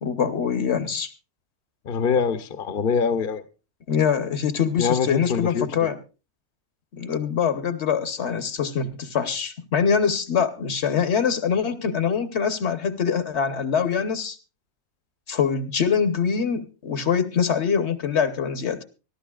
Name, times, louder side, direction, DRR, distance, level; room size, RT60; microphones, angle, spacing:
voice 1, 0.0-1.1 3.9-6.0 6.9-14.4 15.3-18.8, left 7 dB, 70° left, 1.3 m, -24 dB
voice 2, 1.8-3.4 4.8-5.9, left 6 dB, 55° left, 0.9 m, -24 dB
24.0 x 12.0 x 2.4 m
omnidirectional pair, 1.2 m